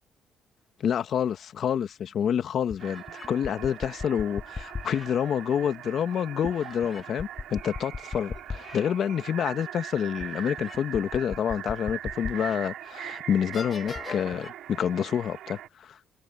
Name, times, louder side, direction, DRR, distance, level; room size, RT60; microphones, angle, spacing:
voice 1, 0.8-16.0, left 8 dB, 65° left, 1.3 m, -28 dB
sound 1, 2.0-2.1 2.7-5.1 6.5-8.8 9.3-9.4 10.2-12.6 13.1-13.2 13.5-14.5, left 5 dB, 35° left, 1.8 m, -38 dB
sound 2, 2.8-15.7, right 12 dB, 85° right, 2.4 m, -41 dB
cardioid pair, 90°, 0 cm